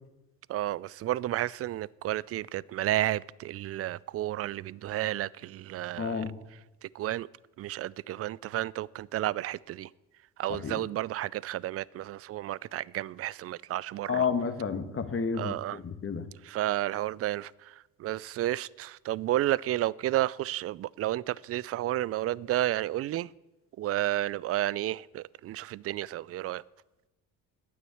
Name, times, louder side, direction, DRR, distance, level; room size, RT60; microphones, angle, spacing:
voice 1, 0.5-6.3 6.8-7.3 7.6-9.9 10.4-14.3 15.4-15.8 16.4-23.3 23.8-26.6, right 14 dB, 35° right, 0.4 m, -31 dB
voice 2, 6.0-6.3 10.5-10.8 14.1-16.3, left 6 dB, 30° left, 1.4 m, -31 dB
9.4 x 9.2 x 8.5 m
hypercardioid pair, 60°, 43 cm